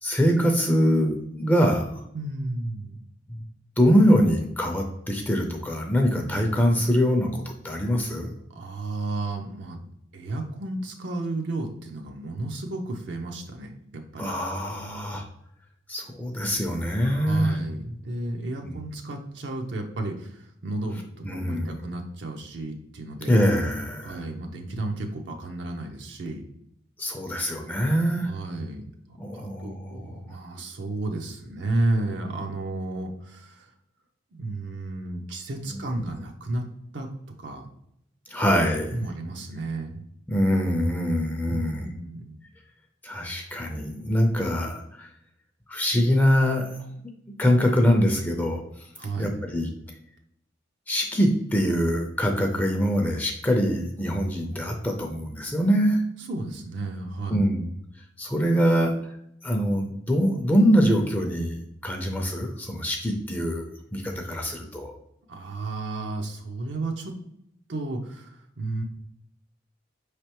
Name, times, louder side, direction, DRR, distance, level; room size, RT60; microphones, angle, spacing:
voice 1, 0.0-2.0 3.3-3.4 3.8-8.3 14.2-15.3 15.9-17.6 18.6-18.7 21.2-21.8 23.3-24.2 27.0-28.3 29.2-30.2 38.3-39.0 40.3-41.9 43.0-45.1 45.7-46.8 47.0-47.1 47.4-48.6 49.2-49.7 50.9-56.0 57.3-57.6 58.2-59.0 59.4-63.6 63.9-65.0, equal, 10° left, 2 dB, 0.5 m, -23 dB
voice 2, 2.1-3.0 8.5-9.8 10.1-14.3 17.0-23.3 24.0-26.4 28.3-33.7 34.3-36.7 36.9-37.1 37.4-37.7 38.9-40.0 41.5-42.4 49.0-49.4 56.2-57.4 65.3-67.1 67.7-68.8, right 2 dB, 65° right, 3 dB, 0.6 m, -32 dB
5.1 x 3.3 x 2.9 m, 0.76 s
head